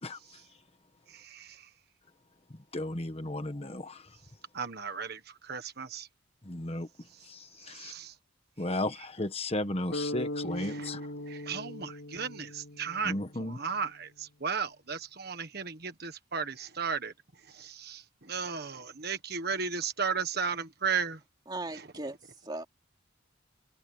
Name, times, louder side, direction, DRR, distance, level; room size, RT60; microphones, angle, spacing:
voice 1, 1.1-1.7 4.5-6.1 7.1-7.3 7.6-8.1 10.6-17.1 17.4-21.2, right 6 dB, 50° right, 1.5 m, -35 dB
voice 2, 2.7-4.1 6.4-6.9 7.2-7.9 8.6-11.1 13.0-13.6, left 1 dB, 30° left, 1.2 m, -34 dB
sound 1, 9.9-13.8, left 1 dB, 75° left, 4.2 m, -39 dB
voice 3, 21.5-22.6, right 2 dB, 20° right, 3.2 m, -38 dB
head